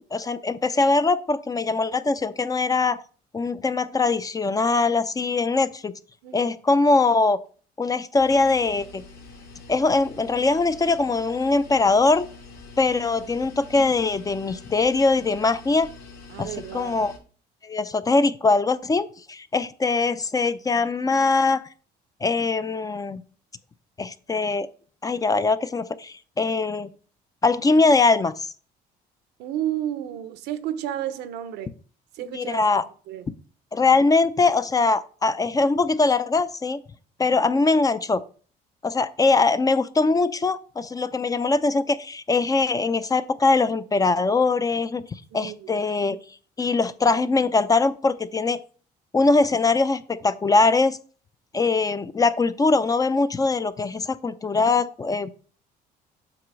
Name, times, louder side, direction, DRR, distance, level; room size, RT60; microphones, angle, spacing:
voice 1, 0.1-3.0 3.3-5.9 6.3-7.4 7.8-9.0 9.7-12.3 12.8-15.9 16.4-16.5 16.7-17.1 17.6-21.6 22.2-23.2 24.0-24.7 25.0-26.9 27.4-28.4 32.3-32.8 33.7-36.8 37.2-38.2 38.8-45.1 45.3-46.2 46.6-48.6 49.1-51.0 51.5-55.3, left 3 dB, 20° left, 0.5 m, -22 dB
voice 2, 6.2-6.5 16.3-17.0 29.4-31.7 32.1-33.3 45.3-45.8, right 11 dB, 85° right, 0.8 m, -32 dB
sound 1, 8.2-17.2, left 4 dB, 65° left, 2.7 m, -45 dB
7.7 x 3.0 x 6.1 m
cardioid pair, 110°, 17 cm